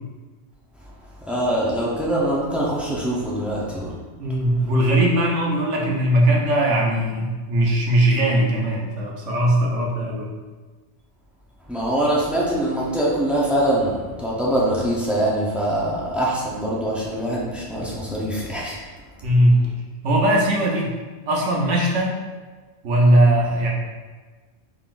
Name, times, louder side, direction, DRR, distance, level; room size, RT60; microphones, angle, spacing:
voice 1, 1.3-3.9 11.7-18.8, right 1 dB, ahead, -5 dB, 0.5 m, -23 dB
voice 2, 4.2-10.3 19.2-19.6 20.0-20.9 21.3-22.1 22.8-23.7, right 1 dB, 80° right, -2 dB, 1.1 m, -19 dB
3.8 x 3.7 x 2.5 m, 1.4 s
omnidirectional pair, 1.2 m